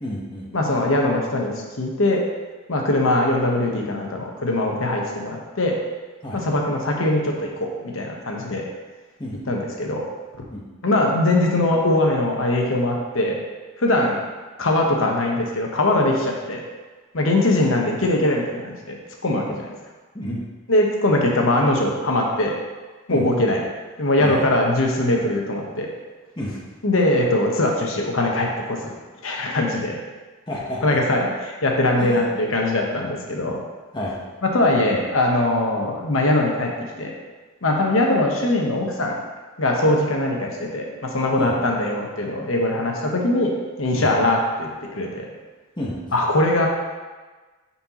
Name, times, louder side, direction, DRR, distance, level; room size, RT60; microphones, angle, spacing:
voice 1, 0.0-0.5 6.2-6.4 9.2-9.4 10.5-10.6 20.1-20.4 23.1-23.3 24.2-24.4 26.4-26.6 30.5-31.0 32.0-32.3 33.9-34.2 41.4-41.6 43.9-44.1 45.8-46.1, left 1 dB, 20° left, -5 dB, 1.1 m, -30 dB
voice 2, 0.5-2.2 2.7-5.8 6.3-8.6 9.5-10.1 10.8-13.4 13.8-14.2 14.6-16.6 17.1-19.0 19.2-19.7 20.7-22.5 23.1-23.6 24.0-25.9 26.8-28.9 29.2-30.0 30.8-33.6 34.4-36.7 37.0-37.1 37.6-39.2 39.6-43.5 43.8-45.2 46.1-46.7, left 1 dB, 75° left, 0 dB, 1.1 m, -21 dB
9.5 x 4.3 x 3.0 m, 1.3 s
head